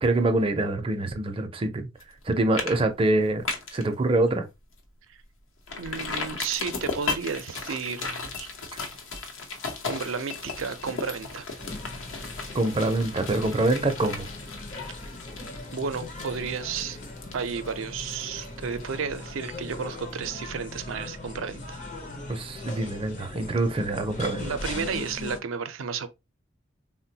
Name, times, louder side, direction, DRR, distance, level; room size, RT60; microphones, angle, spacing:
voice 1, 0.0-1.9 2.3-3.4 3.7-4.5 12.5-14.3 22.3-24.5, right 2 dB, 25° right, 0.5 m, -25 dB
sound 1, 2.0-2.2 2.5-2.8 3.1-3.8 4.3-4.4 4.8-4.9 5.7-19.2 19.5-19.6, left 4 dB, 75° left, 0.8 m, -36 dB
voice 2, 5.8-8.5 9.9-11.5 15.7-17.0 17.3-21.9 24.4-26.1, right 6 dB, 80° right, 0.5 m, -32 dB
Blue Ribbon Restaurant Night (RT), 11.6-25.4, left 2 dB, 40° left, 0.6 m, -39 dB
3.8 x 2.1 x 2.7 m
head